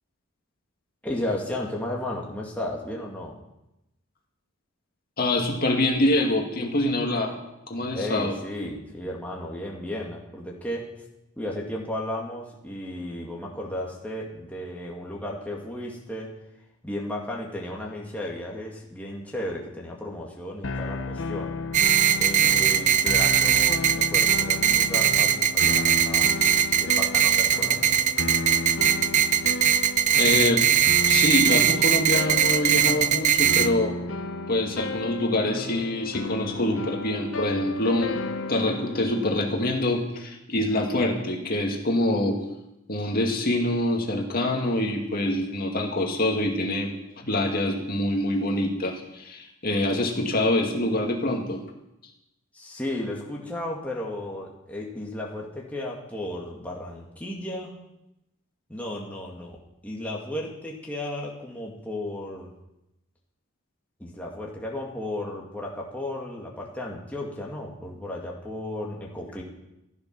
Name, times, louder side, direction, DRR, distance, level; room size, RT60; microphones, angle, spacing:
voice 1, 1.0-3.4 7.9-10.8 11.4-16.3 16.8-21.5 22.1-26.3 26.8-28.0 52.5-57.7 58.7-59.6 59.8-62.5 64.0-69.4, left 1 dB, 5° left, -3 dB, 2.1 m, -34 dB
voice 2, 5.2-7.4 7.7-8.4 30.2-30.7 31.1-33.9 34.5-38.2 38.5-42.4 42.9-51.6, left 1 dB, 45° left, 1 dB, 2.1 m, -25 dB
sound 1, 20.6-39.9, left 3 dB, 70° left, 0.9 m, -33 dB
sound 2, 21.7-33.7, right 9 dB, 35° right, 0.6 m, -20 dB
15.5 x 11.0 x 6.1 m, 0.90 s
head